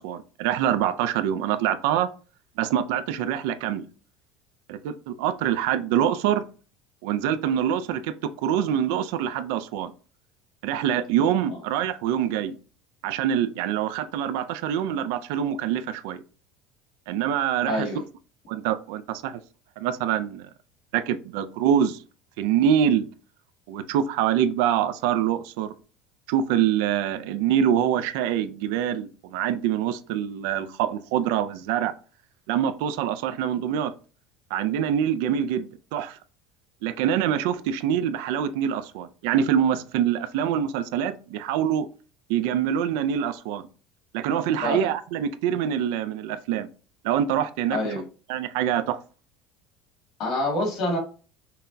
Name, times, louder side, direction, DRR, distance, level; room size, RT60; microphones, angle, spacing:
voice 1, 0.0-2.1 2.6-3.9 4.7-6.4 7.0-9.9 10.6-12.6 13.0-16.2 17.1-18.0 18.5-19.4 19.8-20.5 20.9-22.0 22.4-23.1 23.7-25.7 26.3-31.9 32.5-33.9 34.5-36.2 36.8-41.9 42.3-43.6 44.1-46.7 47.0-47.8 48.3-49.0, right 9 dB, 75° right, 0.4 m, -25 dB
voice 2, 17.7-18.0 44.6-44.9 47.7-48.0 50.2-51.0, left 1 dB, 45° left, 1.7 m, -26 dB
5.6 x 2.2 x 2.6 m
cardioid pair, 150°, 0 cm